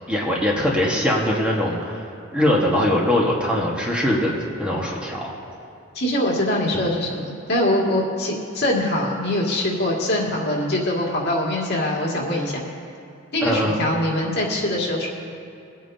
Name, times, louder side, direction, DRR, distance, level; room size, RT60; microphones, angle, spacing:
voice 1, 0.1-5.3 13.4-13.8, left 1 dB, 5° right, -4 dB, 1.5 m, -22 dB
voice 2, 5.9-12.6 13.3-15.1, left 1 dB, 55° left, -3 dB, 2.2 m, -23 dB
23.0 x 9.2 x 2.8 m, 2.5 s
head